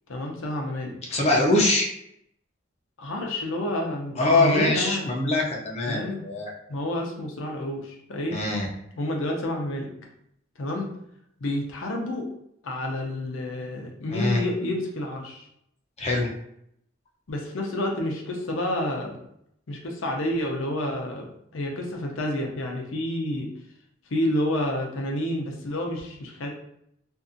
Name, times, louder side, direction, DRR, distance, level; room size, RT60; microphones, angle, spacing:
voice 1, 0.1-1.0 3.0-5.1 5.9-6.3 6.7-8.4 9.0-9.9 10.6-10.9 11.4-12.3 12.6-15.4 17.3-19.1 19.7-21.2 21.5-23.5 24.1-26.5, left 1 dB, 85° left, 1 dB, 0.6 m, -29 dB
voice 2, 1.1-1.9 4.2-6.5 8.3-8.7 14.1-14.4 16.0-16.3, left 2 dB, 35° left, -1 dB, 0.6 m, -23 dB
2.6 x 2.4 x 2.5 m, 0.74 s
head